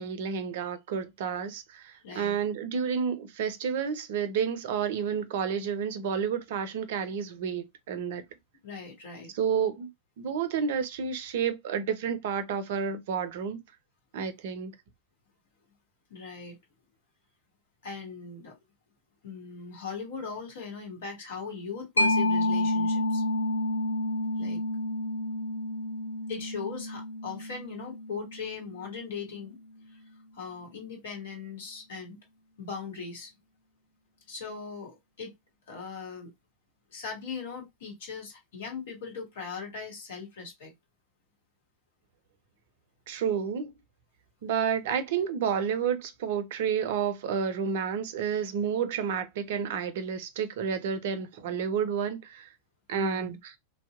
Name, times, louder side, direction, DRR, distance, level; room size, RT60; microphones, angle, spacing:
voice 1, 0.0-8.2 9.3-9.9 10.2-13.6 14.1-14.7 43.1-43.7 44.4-52.5 52.9-53.5, right 7 dB, 55° right, 0.4 m, -30 dB
voice 2, 2.0-2.4 8.6-9.3 16.1-16.6 17.8-18.6 19.2-23.2 24.4-24.6 26.3-29.6 29.9-30.0 30.3-32.2 32.6-33.3 34.3-35.3 35.7-36.3 36.9-40.7 53.0-53.4, left 5 dB, 60° left, 1.1 m, -39 dB
Mallet percussion, 22.0-29.2, left 1 dB, 90° left, 0.4 m, -29 dB
2.6 x 2.0 x 2.4 m
figure-of-eight pair, 90°, 0 cm